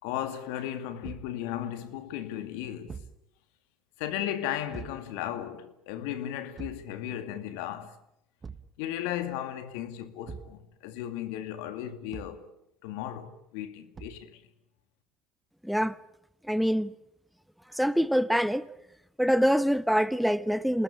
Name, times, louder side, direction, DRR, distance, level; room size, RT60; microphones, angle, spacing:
voice 1, 0.0-3.0 4.0-8.0 8.8-12.5 12.8-14.4, left 11 dB, 75° left, 2.4 m, -35 dB
Thump thud, 1.0-1.4 2.9-3.2 4.7-5.1 6.6-6.9 8.4-8.8 10.3-10.6 12.1-12.5 14.0-14.3, right 5 dB, 30° right, 1.5 m, -43 dB
voice 2, 15.6-16.0 16.5-16.9 17.7-18.6 19.2-20.8, equal, ahead, 1.0 m, -25 dB
28.0 x 20.0 x 8.8 m
hypercardioid pair, 65°, 0 cm